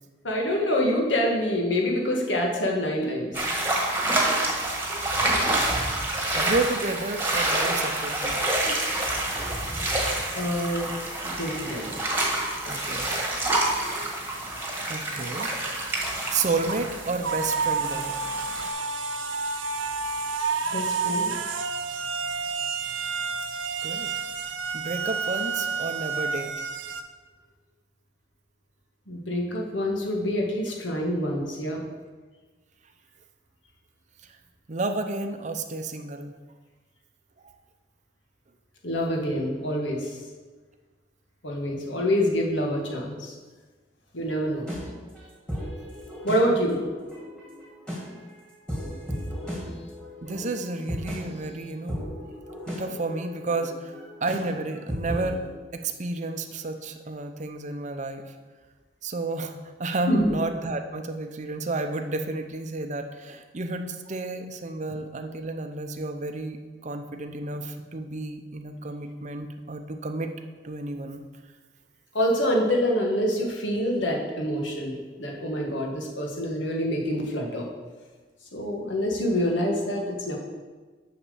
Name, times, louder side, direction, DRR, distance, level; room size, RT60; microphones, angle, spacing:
voice 1, 0.2-3.3 10.3-10.9 11.2-12.0 12.6-13.0 20.7-21.3 29.1-31.8 38.8-40.2 41.4-43.3 44.1-44.6 46.2-46.8 60.1-60.3 72.1-77.7 78.5-80.4, equal, 75° left, 0 dB, 1.7 m, -26 dB
sound 1, 3.3-18.7, right 1 dB, 10° right, 1.5 m, -28 dB
voice 2, 6.3-8.4 14.9-15.5 16.3-18.2 23.8-24.1 24.7-26.5 34.7-36.3 37.4-37.5 46.6-46.8 49.7-49.8 50.2-52.0 52.7-53.9 54.2-55.4 55.7-58.2 59.0-70.3 70.6-71.2, right 3 dB, 40° right, 6 dB, 0.7 m, -31 dB
sound 2, 15.2-15.7 16.2-16.3 16.7-27.0, right 5 dB, 85° right, 0.7 m, -30 dB
sound 3, 44.5-55.5, equal, 5° left, 2.1 m, -36 dB
7.1 x 5.9 x 6.9 m, 1.4 s
head